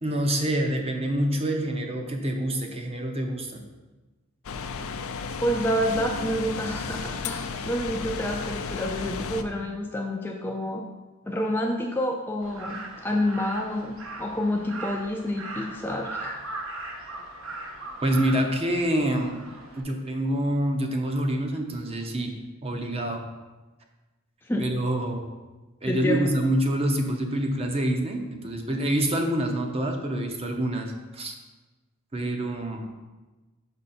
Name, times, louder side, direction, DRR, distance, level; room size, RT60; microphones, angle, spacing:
voice 1, 0.0-3.6 18.0-19.4 19.8-22.3 22.6-23.2 24.6-25.3 25.8-31.3 32.1-32.8, right 1 dB, 30° right, 3 dB, 0.7 m, -26 dB
sound 1, 4.4-9.4, left 5 dB, 75° left, 0.4 m, -33 dB
voice 2, 5.4-10.8 11.3-16.4 24.4-24.7 25.9-26.3, equal, 10° left, 1 dB, 0.4 m, -28 dB
Crow, 12.4-19.8, right 2 dB, 65° right, 0.9 m, -39 dB
5.4 x 5.3 x 4.3 m, 1.2 s
head